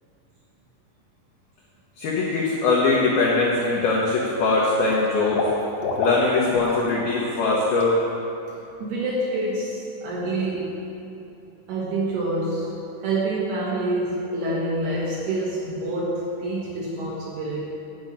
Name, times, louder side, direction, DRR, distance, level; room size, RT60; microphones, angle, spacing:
voice 1, 2.0-5.5 6.0-8.0, left 3 dB, 90° left, -4 dB, 2.1 m, -21 dB
Water / Liquid, 2.7-3.0 3.4-4.1 4.4-6.9 7.2-7.4 7.7-7.8, left 3 dB, 75° left, 2.1 m, -30 dB
voice 2, 8.5-10.8 11.7-12.8 13.0-17.7, right 2 dB, 65° right, -5 dB, 2.7 m, -27 dB
11.0 x 5.4 x 8.8 m, 2.8 s
omnidirectional pair, 6.0 m